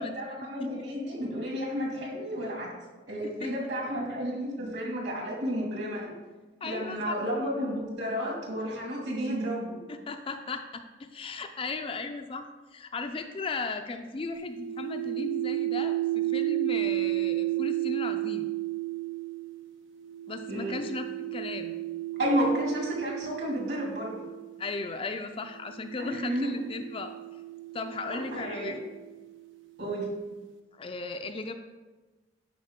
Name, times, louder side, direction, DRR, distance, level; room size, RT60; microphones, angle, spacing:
voice 1, 0.0-2.7 3.1-6.1 6.6-9.8 20.5-20.8 22.2-24.2 26.0-26.5 28.1-28.8 29.8-30.1, equal, 60° right, -1 dB, 2.3 m, -31 dB
voice 2, 6.6-7.2 9.9-10.8 11.1-18.5 20.3-21.0 21.3-21.8 24.6-27.2 27.7-28.8 30.7-31.5, left 3 dB, 30° left, 6 dB, 0.4 m, -36 dB
sound 1, 14.3-24.7 25.6-29.3, right 17 dB, 80° right, 0.8 m, -33 dB
11.0 x 4.8 x 3.6 m, 1.2 s
head